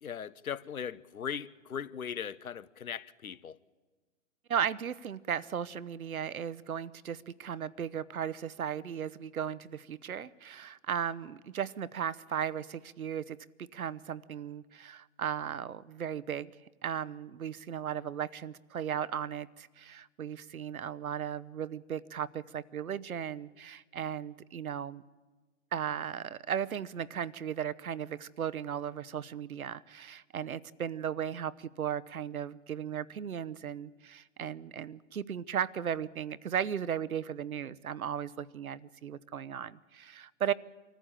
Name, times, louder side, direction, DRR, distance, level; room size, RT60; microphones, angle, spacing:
voice 1, 0.0-3.6, left 7 dB, 85° left, 1.0 m, -39 dB
voice 2, 4.5-16.5 16.8-25.0 25.7-40.5, right 8 dB, 85° right, 0.9 m, -36 dB
25.5 x 14.5 x 8.9 m
hypercardioid pair, 130°, 42 cm